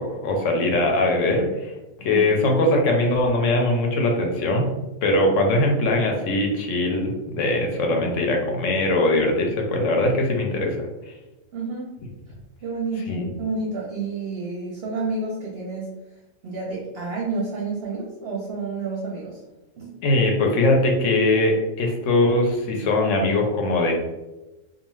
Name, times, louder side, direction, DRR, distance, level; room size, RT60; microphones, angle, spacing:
voice 1, 0.0-4.7 5.0-10.8 13.1-13.3 20.0-23.9, left 2 dB, 70° left, 1 dB, 0.9 m, -21 dB
voice 2, 11.5-11.9 12.6-15.9 16.4-19.4 19.8-19.9, right 3 dB, 60° right, -4 dB, 0.7 m, -30 dB
2.4 x 2.4 x 3.0 m, 1.1 s
omnidirectional pair, 1.4 m